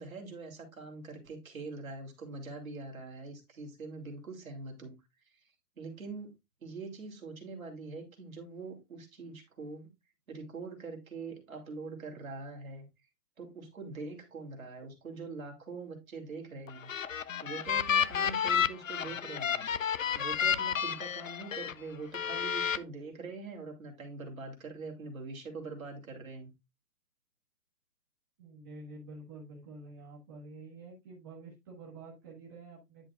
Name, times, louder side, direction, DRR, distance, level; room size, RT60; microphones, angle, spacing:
voice 1, 0.0-4.9 5.8-6.4 6.6-9.9 10.3-12.9 13.4-16.9 17.4-19.7 20.1-26.5, right 3 dB, 55° right, 3.2 m, -43 dB
sound 1, 16.7-21.7 22.1-22.8, left 8 dB, 55° left, 0.6 m, -31 dB
voice 2, 28.4-33.1, right 3 dB, 15° right, 1.6 m, -48 dB
10.5 x 6.3 x 2.5 m
hypercardioid pair, 180°, 48 cm